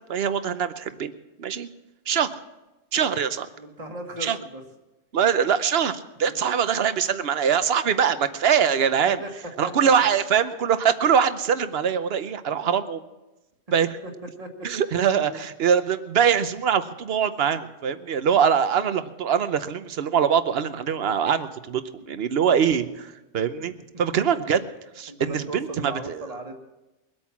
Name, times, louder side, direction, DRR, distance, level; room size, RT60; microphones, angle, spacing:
voice 1, 0.1-1.1 1.4-1.7 2.1-2.4 2.9-3.5 4.2-4.4 5.1-9.2 9.6-13.0 13.7-13.9 14.6-24.6 25.0-26.2, right 7 dB, 55° right, 11 dB, 1.0 m, -23 dB
voice 2, 3.5-4.6 6.3-6.4 9.0-9.3 9.6-9.9 14.0-14.1 14.4-14.5 15.2-15.4 22.0-22.2 24.3-24.4 25.1-26.5, right 1 dB, 30° right, 3 dB, 1.7 m, -37 dB
22.0 x 8.8 x 5.9 m, 1.0 s
omnidirectional pair, 1.3 m